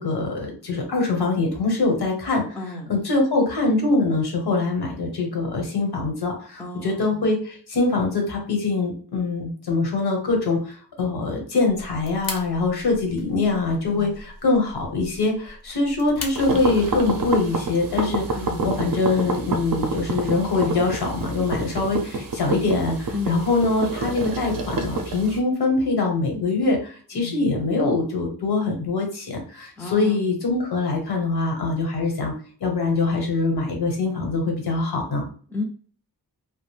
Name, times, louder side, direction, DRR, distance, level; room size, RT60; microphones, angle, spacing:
voice 1, 0.0-2.4 2.9-32.3 32.6-35.2, left 3 dB, 80° left, 1 dB, 0.9 m, -23 dB
voice 2, 2.6-3.0 6.6-7.2 13.8-14.1 18.4-18.7 23.1-23.5 27.1-27.4 29.8-30.2 35.5-35.6, left 3 dB, 5° left, 2 dB, 0.4 m, -33 dB
sound 1, 11.7-17.5, left 3 dB, 60° left, 0.6 m, -40 dB
sound 2, 16.4-25.4, right 3 dB, 60° right, 0.5 m, -28 dB
2.4 x 2.0 x 3.2 m, 0.43 s
wide cardioid pair, 140°, 38 cm